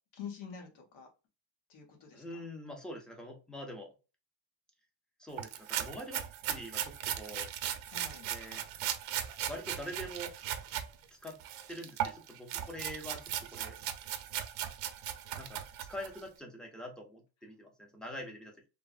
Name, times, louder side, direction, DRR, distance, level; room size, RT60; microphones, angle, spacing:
voice 1, 0.1-1.1 1.7-2.4 7.9-8.3, left 7 dB, 75° left, 2 dB, 1.2 m, -47 dB
voice 2, 2.1-3.9 5.2-7.5 8.3-8.6 9.5-10.3 11.2-11.4 11.7-13.8 15.4-15.6 15.9-18.6, equal, ahead, 2 dB, 0.4 m, -44 dB
sound 1, 5.4-10.9 11.2-16.2, right 11 dB, 75° right, 0.6 m, -38 dB
3.3 x 2.0 x 2.3 m, 0.31 s
cardioid pair, 155°, 49 cm